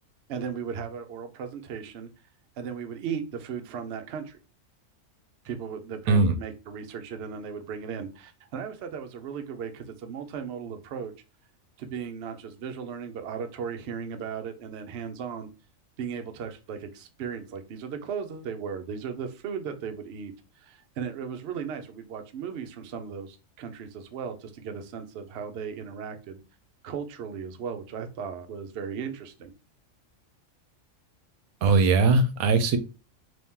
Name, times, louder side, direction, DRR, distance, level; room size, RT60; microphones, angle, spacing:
voice 1, 0.3-2.1 2.6-4.4 5.4-11.1 11.8-15.5 16.0-26.4 26.8-29.5, right 6 dB, 60° right, 0.7 m, -36 dB
voice 2, 31.6-32.8, right 3 dB, 90° right, 1.0 m, -20 dB
2.9 x 2.8 x 3.5 m
omnidirectional pair, 1.4 m